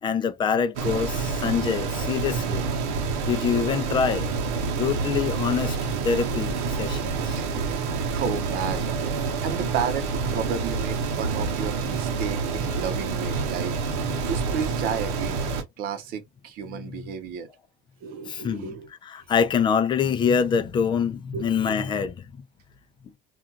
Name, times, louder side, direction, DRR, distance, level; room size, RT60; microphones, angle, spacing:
voice 1, 0.0-2.7 3.2-4.3 4.8-5.8 6.0-7.4 14.0-14.3 16.7-17.1 18.3-18.7 19.0-22.3, left 6 dB, 25° left, 0.5 m, -25 dB
sound 1, 0.8-15.6, right 4 dB, 85° right, 0.9 m, -28 dB
voice 2, 7.3-9.2 9.4-15.4 15.8-17.5 18.0-18.9 21.3-21.9, right 7 dB, 55° right, 0.8 m, -33 dB
2.5 x 2.4 x 2.8 m
cardioid pair, 135°, 18 cm